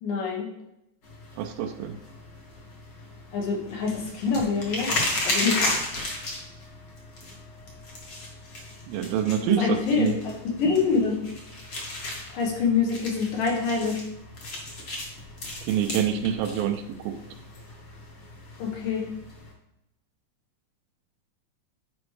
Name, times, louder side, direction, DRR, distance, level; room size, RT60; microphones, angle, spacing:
voice 1, 0.0-0.5 3.3-4.9 5.3-5.7 9.4-10.1 10.6-11.2 12.3-14.0 18.6-19.1, left 5 dB, 70° left, -1 dB, 2.8 m, -25 dB
sound 1, 1.0-19.5, left 2 dB, 45° left, 1.7 m, -35 dB
voice 2, 1.4-2.0 8.9-10.2 15.6-17.2, right 9 dB, 80° right, 6 dB, 2.3 m, -26 dB
9.7 x 5.2 x 3.2 m, 0.84 s
omnidirectional pair, 4.3 m